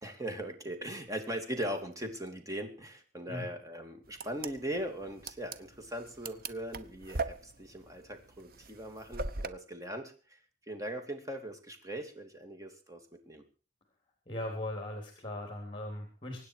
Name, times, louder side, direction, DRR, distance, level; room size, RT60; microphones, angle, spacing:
voice 1, 0.0-10.1 10.7-13.4, right 1 dB, 20° right, 5 dB, 2.9 m, -40 dB
sound 1, 4.1-9.5, right 3 dB, 55° right, 1.0 m, -39 dB
voice 2, 14.3-16.4, left 1 dB, 30° left, 3 dB, 3.6 m, -39 dB
24.5 x 9.7 x 4.8 m, 0.36 s
head